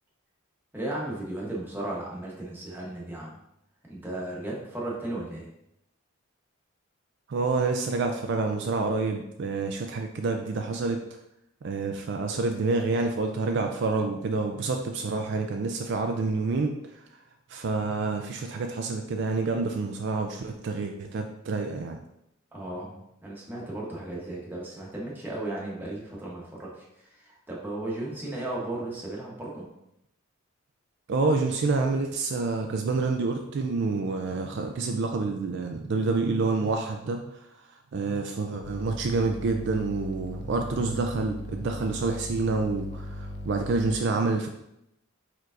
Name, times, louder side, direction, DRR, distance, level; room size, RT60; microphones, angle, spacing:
voice 1, 0.7-3.4 3.9-5.5 22.5-29.7, right 1 dB, 10° right, -4 dB, 1.0 m, -35 dB
voice 2, 7.3-11.0 11.6-16.8 17.5-22.0 31.1-37.2 37.9-44.5, right 3 dB, 55° right, 4 dB, 0.3 m, -28 dB
sound 1, 38.6-44.0, left 1 dB, 50° left, 0.4 m, -38 dB
4.6 x 4.5 x 2.5 m, 0.82 s
head